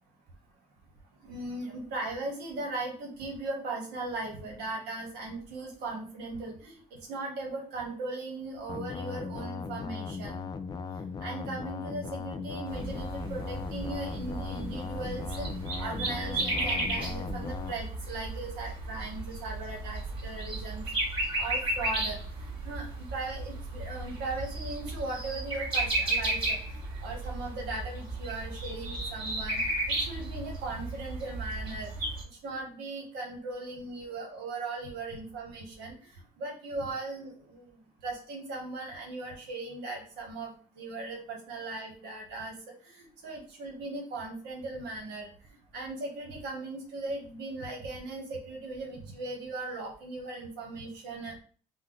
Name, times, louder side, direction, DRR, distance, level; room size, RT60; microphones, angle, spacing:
voice 1, 1.2-6.7 7.1-10.4 11.2-15.5 15.8-20.8 21.4-22.2 22.6-26.8 27.0-29.6 29.9-32.1 32.4-36.0 36.4-37.7 38.0-40.5 40.8-42.5 43.2-45.3 45.7-51.3, right 2 dB, 85° right, 0 dB, 1.1 m, -38 dB
sound 1, 8.7-17.7, left 5 dB, 25° left, 0.4 m, -38 dB
sound 2, 12.7-32.2, right 2 dB, 30° right, 2.1 m, -34 dB
5.5 x 2.1 x 3.8 m, 0.43 s
cardioid pair, 110°, 17 cm